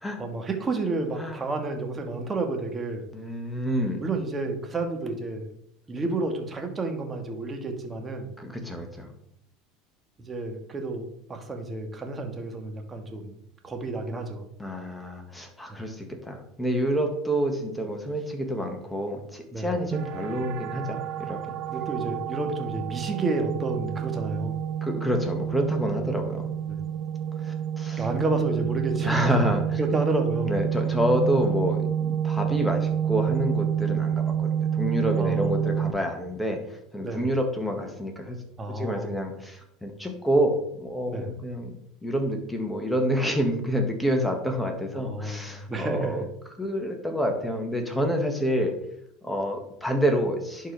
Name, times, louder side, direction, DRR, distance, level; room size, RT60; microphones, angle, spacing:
voice 1, 0.2-3.0 4.0-5.5 5.9-8.3 10.3-13.4 13.6-14.5 15.7-15.8 19.5-19.7 21.7-24.6 26.7-26.8 28.0-29.4 29.8-30.5 35.2-35.7 37.0-37.3 38.6-39.2 41.1-41.3 44.9-46.3, right 2 dB, 25° right, 4 dB, 1.7 m, -30 dB
voice 2, 3.1-4.0 8.4-9.1 14.6-21.4 24.8-26.5 27.4-28.1 29.0-29.8 30.5-38.4 38.7-41.7 42.0-46.2 46.6-48.7 49.2-50.7, equal, 5° left, 3 dB, 1.9 m, -28 dB
sound 1, 19.9-35.9, right 9 dB, 55° right, 0.7 m, -28 dB
11.0 x 4.6 x 3.5 m, 0.73 s
hypercardioid pair, 80°, 0 cm